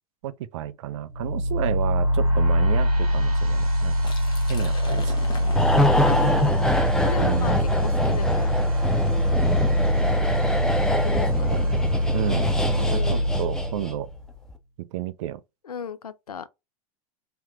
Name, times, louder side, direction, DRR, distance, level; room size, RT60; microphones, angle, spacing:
voice 1, 0.2-4.1 4.5-5.1 7.2-7.6 11.4-11.8 12.1-14.1 14.8-15.4, right 13 dB, 55° right, 0.4 m, -31 dB
sound 1, 1.1-14.2, equal, 80° right, 1.3 m, -23 dB
Liquid, 3.9-9.7, left 5 dB, 25° left, 1.0 m, -41 dB
sound 2, 5.6-14.1 14.4-14.5, left 1 dB, 5° left, 0.5 m, -25 dB
voice 2, 6.0-6.7 7.0-8.5 11.0-11.6 12.8-13.2 15.6-16.5, left 7 dB, 85° left, 0.4 m, -35 dB
3.3 x 2.8 x 2.3 m
figure-of-eight pair, 95°, 19 cm